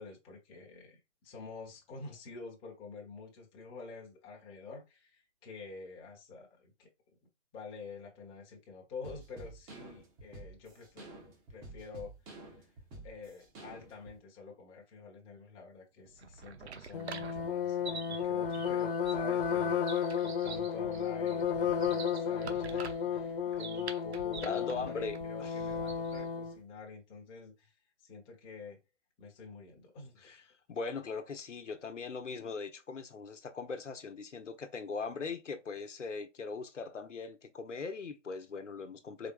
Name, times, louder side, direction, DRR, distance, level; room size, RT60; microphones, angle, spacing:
voice 1, 0.0-6.9 7.5-11.1 11.5-12.7 13.0-19.9 20.2-28.8 29.2-30.3, left 4 dB, 15° left, 1.1 m, -48 dB
sound 1, 9.0-14.2, right 2 dB, 15° right, 1.0 m, -50 dB
sound 2, 16.1-26.3, right 5 dB, 60° right, 0.9 m, -46 dB
sound 3, 16.9-26.6, left 7 dB, 50° left, 0.7 m, -33 dB
voice 2, 24.4-25.6 30.2-30.4 30.7-39.3, left 4 dB, 75° left, 1.0 m, -40 dB
4.5 x 3.5 x 2.5 m
figure-of-eight pair, 140°, 36 cm